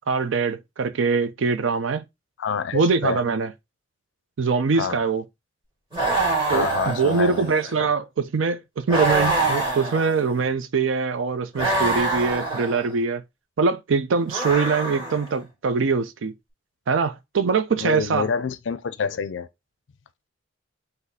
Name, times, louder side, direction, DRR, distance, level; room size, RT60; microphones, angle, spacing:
voice 1, 0.1-2.0 2.7-3.5 4.4-5.2 6.5-13.2 13.6-16.3 16.9-18.3, right 5 dB, 75° right, 0.5 m, -23 dB
voice 2, 2.4-3.2 4.7-5.0 6.5-7.5 17.8-19.5, left 6 dB, 65° left, 0.4 m, -27 dB
sound 1, 5.9-7.7 8.9-10.4 11.5-12.9 14.3-15.4, right 2 dB, 25° right, 2.1 m, -25 dB
4.0 x 2.7 x 3.9 m
head